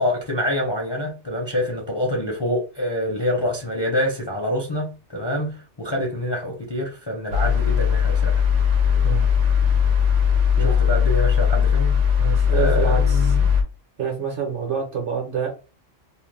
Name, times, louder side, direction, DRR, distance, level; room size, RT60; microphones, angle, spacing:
voice 1, 0.0-8.4 10.6-12.0 12.5-13.5, left 1 dB, 30° left, 0.5 m, -26 dB
sound 1, 7.3-13.6, left 7 dB, 75° right, 1.0 m, -19 dB
voice 2, 12.2-13.3 14.0-15.5, right 7 dB, 50° right, 0.9 m, -27 dB
2.5 x 2.2 x 3.2 m
omnidirectional pair, 1.3 m